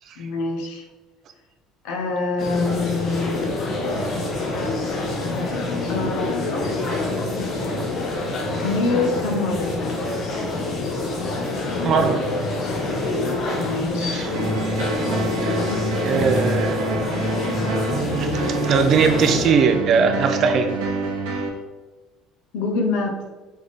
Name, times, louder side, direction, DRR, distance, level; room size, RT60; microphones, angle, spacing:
voice 1, 0.2-0.9 1.8-3.5 4.9-5.0 5.9-6.8 8.6-9.8 13.5-14.3 15.6-16.0 22.5-23.2, left 3 dB, 80° left, 2 dB, 0.7 m, -26 dB
sound 1, 2.4-19.5, left 2 dB, 30° left, 0.7 m, -26 dB
voice 2, 11.8-12.2 14.0-14.3 15.4-15.6 16.0-16.9 18.2-18.3 18.7-20.7, right 5 dB, 35° right, 6 dB, 0.4 m, -20 dB
sound 2, 14.3-21.5, right 3 dB, 85° right, 0.7 m, -26 dB
3.6 x 3.3 x 3.9 m, 1.2 s
cardioid pair, 180°, 0 cm